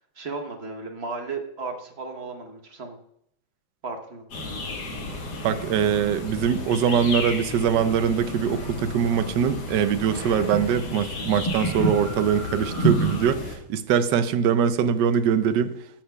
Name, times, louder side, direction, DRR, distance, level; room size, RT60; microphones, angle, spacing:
voice 1, 0.1-3.0 3.8-4.2, right 4 dB, 45° right, 0.8 m, -34 dB
sound 1, 4.3-13.6, right 1 dB, 55° left, 2.0 m, -30 dB
voice 2, 5.4-15.7, right 8 dB, 75° right, 1.1 m, -23 dB
13.5 x 6.6 x 2.2 m
omnidirectional pair, 2.3 m